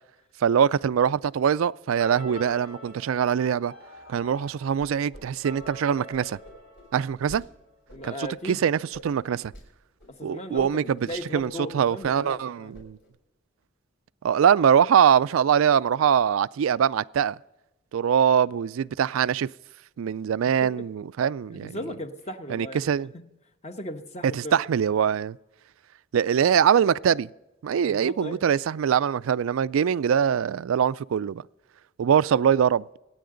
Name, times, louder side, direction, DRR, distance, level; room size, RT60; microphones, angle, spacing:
voice 1, 0.4-3.7 4.1-6.4 6.9-7.4 8.0-9.5 10.2-11.0 11.3-13.0 14.2-17.4 17.9-19.5 20.0-21.8 22.5-23.1 24.3-25.4 26.1-27.3 27.6-31.4 32.0-32.8, right 8 dB, 80° right, 0.3 m, -23 dB
sound 1, 2.0-7.7, left 1 dB, 80° left, 3.4 m, -45 dB
sound 2, 4.8-5.2 5.5-7.4 7.9-8.3 8.9-9.7 10.0-10.1 10.5-10.7 11.0-11.6 11.9-12.4 12.7-13.1, equal, 60° left, 5.6 m, -48 dB
voice 2, 7.9-8.8 9.3-9.4 10.1-12.7 20.6-20.9 21.5-23.2 23.6-24.6 27.8-28.4, equal, 35° left, 1.1 m, -37 dB
25.0 x 9.4 x 3.9 m
head